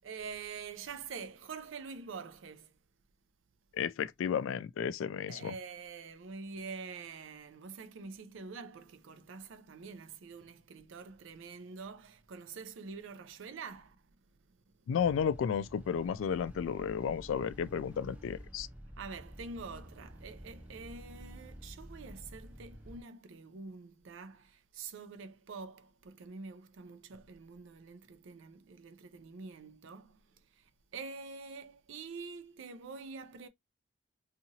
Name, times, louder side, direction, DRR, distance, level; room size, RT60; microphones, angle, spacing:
voice 1, 0.0-2.7 5.3-14.0 19.0-30.2 30.9-33.5, right 5 dB, 80° right, 0.5 m, -46 dB
voice 2, 3.7-5.5 14.9-18.7, left 7 dB, 80° left, 0.3 m, -33 dB
sound 1, 15.0-23.0, equal, 10° right, 0.4 m, -50 dB
2.8 x 2.4 x 2.7 m
head